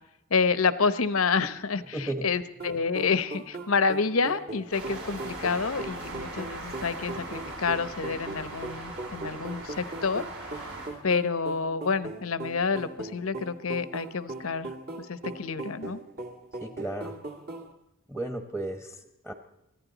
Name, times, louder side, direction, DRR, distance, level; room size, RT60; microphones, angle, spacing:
voice 1, 0.3-10.7 11.0-14.7 15.0-16.0, left 5 dB, 85° left, 13 dB, 0.9 m, -28 dB
voice 2, 1.9-2.2 16.6-17.1 18.1-19.0 19.2-19.3, right 1 dB, 5° right, 5 dB, 1.0 m, -33 dB
sound 1, 2.6-17.7, right 2 dB, 50° right, 1.9 m, -40 dB
sound 2, 4.7-10.9, right 2 dB, 75° right, 6.5 m, -40 dB
24.0 x 15.0 x 4.0 m, 0.84 s
head